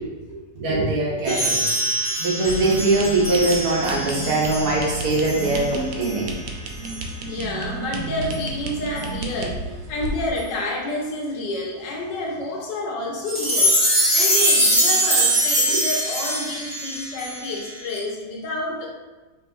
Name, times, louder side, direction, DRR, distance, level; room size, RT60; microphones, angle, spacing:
voice 1, 0.3-1.6 2.2-6.3 15.7-15.8, right 2 dB, 60° right, -3 dB, 1.2 m, -22 dB
sound 1, 1.2-5.7 6.0-6.2 6.8-7.0 8.3-8.4 9.0-9.1 10.4-10.5 13.2-18.0, right 1 dB, 10° left, 0.9 m, -23 dB
sound 2, 2.4-10.3, right 3 dB, 80° right, 0.8 m, -32 dB
voice 2, 7.2-9.6 9.9-13.8 14.1-18.9, left 2 dB, 70° left, -2 dB, 1.4 m, -29 dB
4.9 x 2.8 x 2.5 m, 1.2 s
omnidirectional pair, 2.0 m